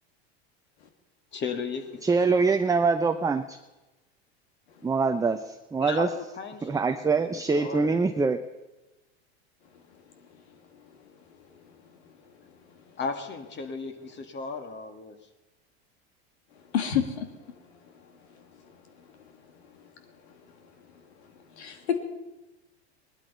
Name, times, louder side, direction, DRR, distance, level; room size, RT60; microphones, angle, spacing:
voice 1, 1.3-2.0 5.8-7.0 7.5-8.0 13.0-15.1, left 5 dB, 35° left, 7 dB, 2.1 m, -35 dB
voice 2, 2.0-3.6 4.8-6.1 6.6-8.4, right 4 dB, 10° right, 7 dB, 0.7 m, -24 dB
voice 3, 16.7-17.3 21.6-22.0, left 8 dB, 85° left, 7 dB, 2.4 m, -27 dB
19.0 x 12.0 x 5.6 m, 1.1 s
hypercardioid pair, 105°, 32 cm